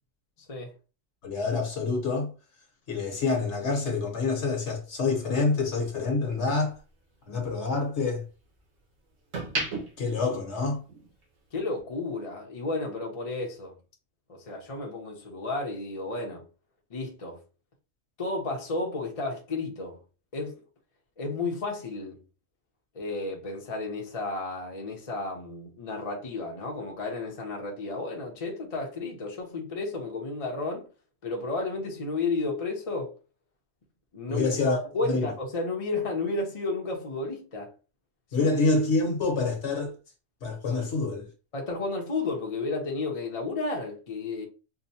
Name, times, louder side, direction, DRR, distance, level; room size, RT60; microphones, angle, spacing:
voice 1, 1.2-2.3 2.9-6.8 7.3-8.2 10.0-10.8 34.3-34.7 35.1-35.2 38.3-39.9 40.4-41.3, left 3 dB, 65° left, 1.3 m, -27 dB
sound 1, 4.5-6.8 7.2-8.7 9.1-11.2 11.5-11.8, right 3 dB, 80° right, 1.7 m, -37 dB
voice 2, 11.5-13.8 14.3-16.5 16.9-17.4 18.2-20.0 20.3-20.6 21.2-22.2 22.9-30.9 31.2-33.2 34.1-37.7 38.4-38.5 41.5-44.5, left 3 dB, 35° left, 0.8 m, -32 dB
4.8 x 2.2 x 2.7 m
omnidirectional pair, 1.3 m